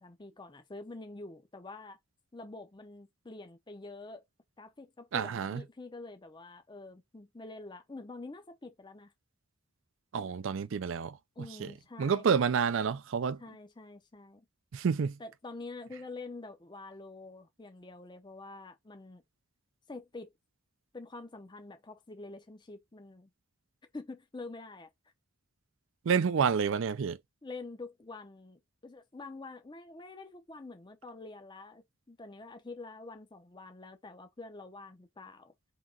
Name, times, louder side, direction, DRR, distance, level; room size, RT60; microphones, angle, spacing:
voice 1, 0.0-2.0 2.3-4.2 4.6-9.1 11.4-12.4 13.4-14.5 15.2-19.2 19.9-20.3 20.9-23.3 23.9-24.9 27.4-35.5, left 3 dB, 20° left, 0.5 m, -46 dB
voice 2, 5.1-5.6 10.1-11.2 11.6-11.7 12.0-13.4 14.7-15.2 26.1-27.2, right 6 dB, 60° right, 0.4 m, -29 dB
3.7 x 2.9 x 3.6 m
head